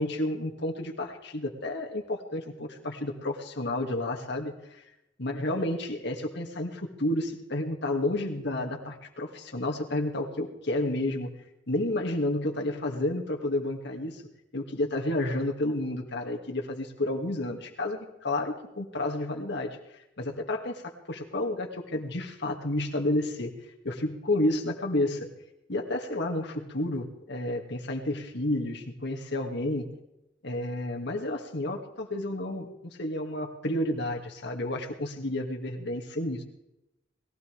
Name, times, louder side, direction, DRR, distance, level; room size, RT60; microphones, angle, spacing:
voice 1, 0.0-4.6 5.2-11.3 11.7-14.2 14.5-19.8 20.2-23.5 23.8-25.3 25.7-29.9 30.4-36.4, left 1 dB, 65° left, 2 dB, 2.3 m, -31 dB
21.0 x 16.5 x 3.5 m, 0.91 s
head